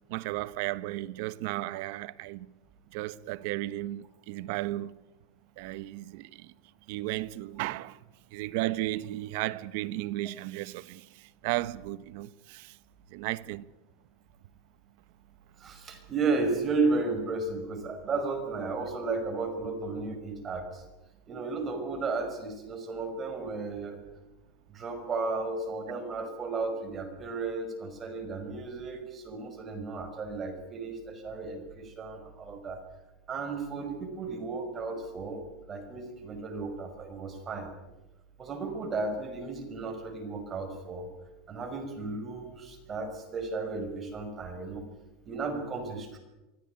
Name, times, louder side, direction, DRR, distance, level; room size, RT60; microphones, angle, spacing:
voice 1, 0.1-2.5 2.9-5.0 5.6-6.5 6.9-8.0 8.3-12.8 13.1-13.7, right 17 dB, 65° right, 1.0 m, -34 dB
voice 2, 15.6-20.8 21.3-24.0 24.7-32.8 33.3-37.7 38.4-41.1 41.5-44.8 45.2-46.2, right 3 dB, 25° right, 5.4 m, -34 dB
24.5 x 16.0 x 9.4 m
supercardioid pair, 135°, 0 cm